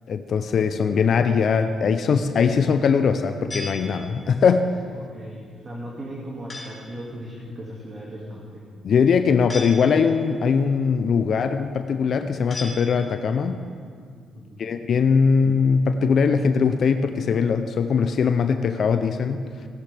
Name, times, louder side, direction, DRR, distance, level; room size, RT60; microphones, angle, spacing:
voice 1, 0.1-4.7 8.8-13.6 14.6-19.5, left 6 dB, 55° left, 8 dB, 0.6 m, -21 dB
sound 1, 3.5-4.4 6.5-7.0 9.5-10.3 12.5-13.4, left 2 dB, 30° left, 3.6 m, -37 dB
voice 2, 4.9-8.6 14.3-14.8 15.3-15.4, equal, 35° right, -4 dB, 2.2 m, -38 dB
17.5 x 11.0 x 3.5 m, 2.1 s
cardioid pair, 90°, 0 cm